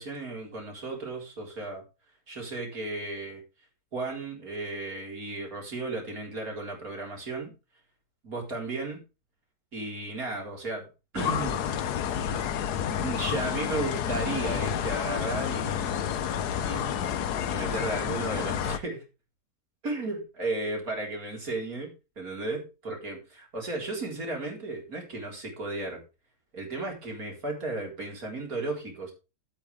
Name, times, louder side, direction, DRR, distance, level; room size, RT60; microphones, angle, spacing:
voice 1, 0.0-1.8 2.3-3.4 3.9-7.5 8.2-9.0 9.7-10.9 11.1-11.7 12.5-16.0 16.6-19.0 19.8-21.9 22.2-26.0 26.5-29.1, right 2 dB, 60° right, 1 dB, 4.7 m, -34 dB
sound 1, 11.2-18.8, left 9 dB, 75° left, 1.4 m, -30 dB
13.0 x 8.6 x 3.5 m, 0.29 s
omnidirectional pair, 1.7 m